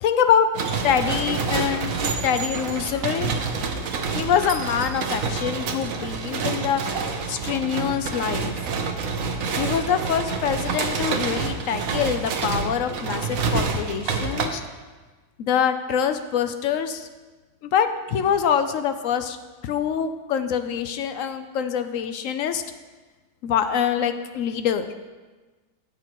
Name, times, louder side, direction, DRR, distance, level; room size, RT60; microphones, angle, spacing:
voice 1, 0.0-0.5 0.8-3.3 4.1-8.6 9.6-14.6 15.4-17.1 17.6-19.4 19.6-22.6 23.4-24.9, left 8 dB, 70° left, 9 dB, 0.8 m, -25 dB
sound 1, 0.5-14.5, right 5 dB, 60° right, 1.1 m, -27 dB
13.0 x 8.1 x 3.0 m, 1.3 s
omnidirectional pair, 1.7 m